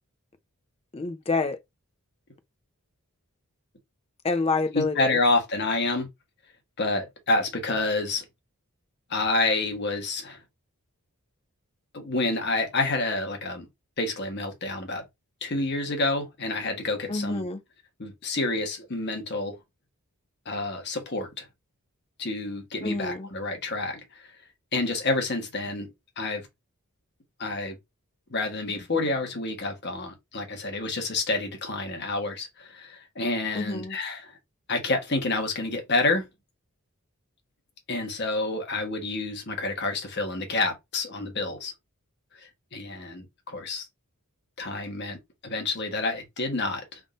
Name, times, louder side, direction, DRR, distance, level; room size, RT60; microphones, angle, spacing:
voice 1, 0.9-1.6 4.2-5.2 17.1-17.6 22.8-23.3 33.5-34.0, left 3 dB, 25° left, 0.4 m, -27 dB
voice 2, 4.7-6.1 6.8-8.2 9.1-10.4 11.9-13.7 14.0-15.0 15.4-17.4 18.0-19.6 20.4-21.5 22.2-24.3 24.7-25.9 26.2-26.4 27.4-27.8 28.3-34.4 34.7-36.3 37.9-41.7 42.7-43.8 44.6-45.2 45.4-47.0, left 2 dB, 50° left, 1.2 m, -28 dB
3.6 x 2.6 x 3.6 m
head